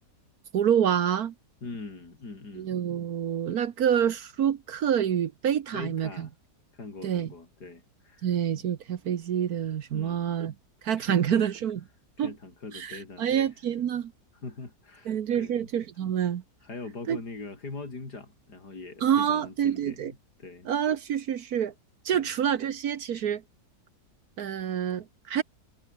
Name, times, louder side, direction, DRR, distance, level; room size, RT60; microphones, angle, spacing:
voice 1, 0.5-1.3 2.6-6.3 7.0-7.3 8.2-10.5 10.8-11.8 12.2-12.3 12.7-14.1 15.1-16.4 17.1-17.2 19.0-20.1 20.7-21.7 22.0-23.4 24.4-25.4, right 9 dB, 70° right, 1.5 m, -27 dB
voice 2, 1.6-2.7 5.7-6.3 6.7-8.6 9.9-10.3 11.0-11.5 12.2-13.6 14.3-15.7 16.6-20.7 22.1-22.3, left 3 dB, 90° left, 4.7 m, -42 dB
omnidirectional pair, 1.7 m